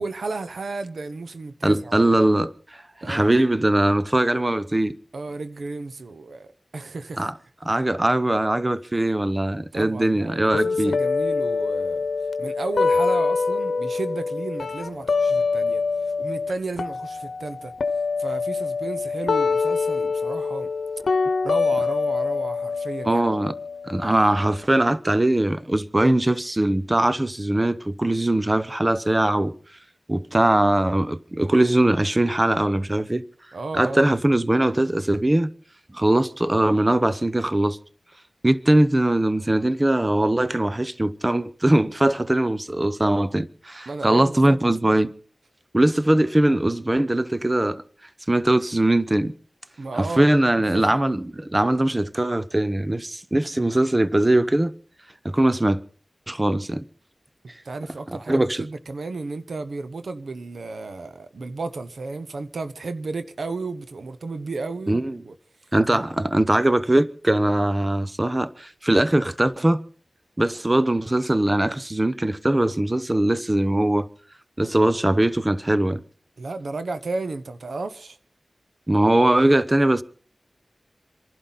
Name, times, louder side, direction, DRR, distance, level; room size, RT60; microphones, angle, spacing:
voice 1, 0.0-2.1 3.0-3.3 5.1-6.5 6.7-7.3 9.7-12.1 12.4-15.8 16.2-17.7 18.2-20.7 21.4-23.3 33.5-34.1 43.9-44.6 49.8-50.3 50.7-50.8 57.6-65.3 65.9-66.0 76.4-78.2, right 3 dB, 85° right, 1.0 m, -33 dB
voice 2, 1.6-5.0 7.2-7.3 7.6-11.0 23.0-23.5 23.9-29.5 30.1-33.2 33.7-35.5 35.9-37.8 38.4-45.1 45.7-47.8 48.3-49.3 49.9-54.7 55.2-55.8 56.3-56.8 58.1-58.6 64.9-65.2 65.7-69.8 70.4-74.1 74.6-76.0 78.9-80.0, right 1 dB, 25° right, 0.9 m, -21 dB
sound 1, 10.5-16.5 16.8-24.6, left 4 dB, 85° left, 0.9 m, -25 dB
27.5 x 11.5 x 4.1 m
cardioid pair, 50°, 0 cm